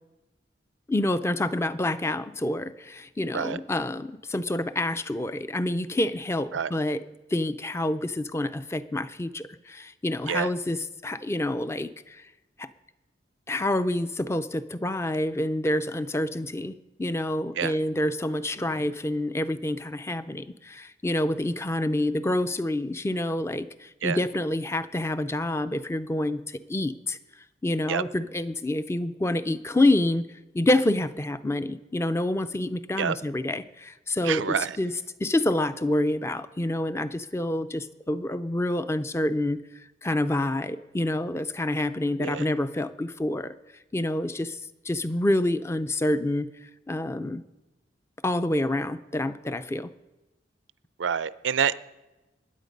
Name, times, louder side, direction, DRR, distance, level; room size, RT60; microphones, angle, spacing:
voice 1, 0.9-7.0 7.3-12.3 12.6-12.7 13.5-27.2 27.6-30.2 30.5-34.4 34.8-34.9 35.2-39.6 40.0-43.5 43.9-44.6 44.8-46.5 46.9-47.4 48.2-49.9, left 1 dB, 15° left, 13 dB, 0.4 m, -27 dB
voice 2, 34.2-34.8 42.2-42.5 51.0-51.8, right 7 dB, 90° right, 17 dB, 0.5 m, -27 dB
20.5 x 9.2 x 5.3 m, 1.0 s
head